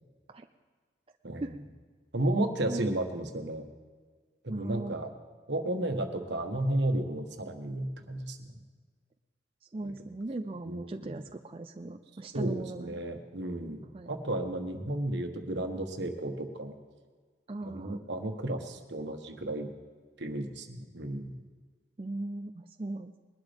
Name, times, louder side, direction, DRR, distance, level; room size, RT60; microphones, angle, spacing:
voice 1, 1.2-1.6 2.1-3.6 4.4-5.1 5.5-8.5 9.8-9.9 10.6-11.2 12.3-16.8 17.6-19.7 20.2-21.4, right 1 dB, 80° right, 5 dB, 1.4 m, -33 dB
voice 2, 4.5-5.0 9.7-13.0 13.9-14.1 17.5-18.0 22.0-23.1, right 2 dB, 30° right, 6 dB, 0.4 m, -38 dB
21.0 x 12.0 x 3.5 m, 1.5 s
head